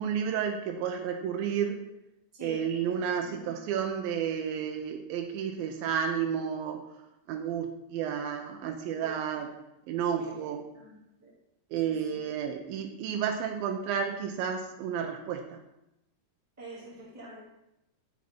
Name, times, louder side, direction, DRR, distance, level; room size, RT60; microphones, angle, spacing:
voice 1, 0.0-1.8 2.4-6.8 7.3-9.5 9.9-10.7 11.7-15.4, right 8 dB, 85° right, 3 dB, 2.4 m, -31 dB
voice 2, 2.3-3.6 9.0-9.2 10.1-10.3 10.7-11.3 11.8-12.2 16.6-17.4, right 2 dB, 5° right, -6 dB, 1.4 m, -47 dB
12.0 x 4.1 x 4.4 m, 0.89 s
omnidirectional pair, 4.1 m